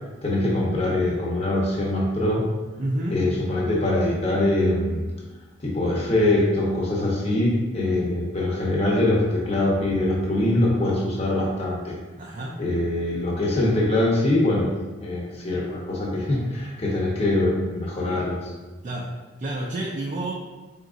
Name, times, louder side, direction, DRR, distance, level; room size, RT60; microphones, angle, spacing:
voice 1, 0.2-2.4 3.1-5.0 5.6-11.9 12.6-14.7 15.0-18.4, left 1 dB, 30° left, -4 dB, 0.8 m, -23 dB
voice 2, 2.8-3.3 12.2-12.6 18.8-19.1 19.4-20.3, right 1 dB, 40° right, -2 dB, 0.4 m, -29 dB
4.0 x 3.7 x 2.4 m, 1.2 s
head